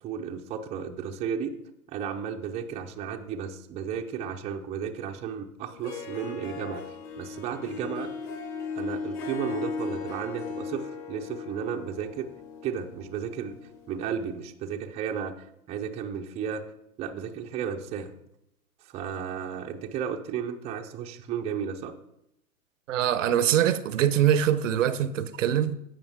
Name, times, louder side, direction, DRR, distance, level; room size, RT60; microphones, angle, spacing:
voice 1, 0.0-1.5 1.9-8.1 8.8-12.3 12.6-13.6 13.9-16.7 17.0-18.1 18.8-21.9, right 7 dB, 15° right, 0.5 m, -33 dB
Harp, 5.7-14.3, left 5 dB, 35° left, 2.1 m, -37 dB
voice 2, 22.9-25.8, right 10 dB, 60° right, 0.7 m, -23 dB
15.5 x 5.3 x 3.5 m
figure-of-eight pair, 110°, 44 cm